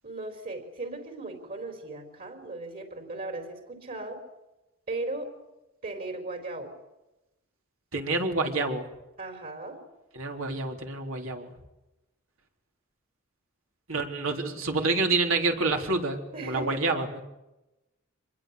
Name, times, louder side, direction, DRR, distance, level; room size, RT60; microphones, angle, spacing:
voice 1, 0.0-4.2 4.9-5.3 5.8-6.7 9.2-9.8 16.3-17.0, right 2 dB, 40° right, 5 dB, 4.3 m, -37 dB
voice 2, 7.9-8.9 10.1-11.5 13.9-17.2, right 3 dB, 65° right, 3 dB, 3.8 m, -28 dB
26.0 x 21.0 x 8.3 m, 0.97 s
head